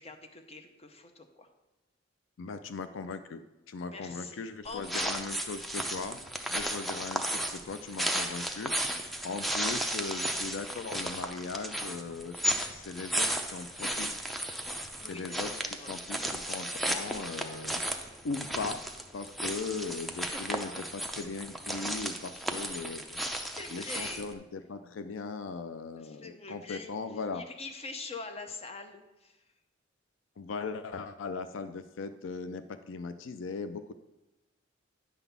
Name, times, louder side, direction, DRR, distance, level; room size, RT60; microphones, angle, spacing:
voice 1, 0.0-1.5 3.9-5.1 8.3-8.4 15.0-15.9 20.1-20.6 22.2-22.3 23.4-24.2 25.9-29.4, left 3 dB, 35° left, 6 dB, 0.8 m, -44 dB
voice 2, 2.4-6.2 6.5-9.0 9.2-14.1 14.7-17.8 18.2-18.8 19.1-23.2 23.4-27.4 30.4-33.9, left 4 dB, 80° left, 11 dB, 0.4 m, -39 dB
sound 1, 4.7-24.3, right 1 dB, ahead, 0.6 m, -34 dB
10.0 x 4.0 x 6.9 m, 1.0 s
head